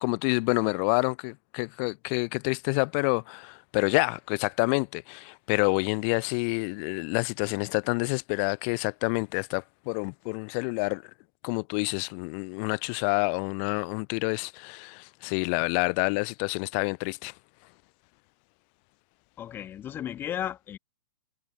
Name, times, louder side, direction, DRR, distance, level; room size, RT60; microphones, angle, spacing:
voice 1, 0.0-11.0 11.4-17.3, left 39 dB, 35° left, 0.9 m, -28 dB
voice 2, 19.4-20.8, left 10 dB, 20° left, 1.7 m, -34 dB
figure-of-eight pair, 105°, 10 cm